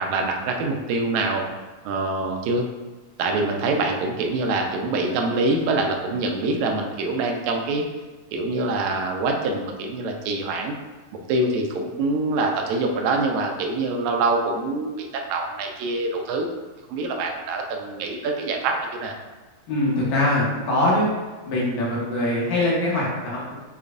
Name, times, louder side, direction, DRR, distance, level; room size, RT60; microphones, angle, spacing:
voice 1, 0.0-1.4 1.9-2.7 3.2-7.9 8.3-10.7 11.3-16.5 16.9-19.2, right 3 dB, 80° right, 2 dB, 1.8 m, -25 dB
voice 2, 19.7-21.1 21.5-23.6, left 1 dB, 70° left, -5 dB, 2.1 m, -23 dB
6.6 x 3.0 x 2.5 m, 1.2 s
omnidirectional pair, 3.5 m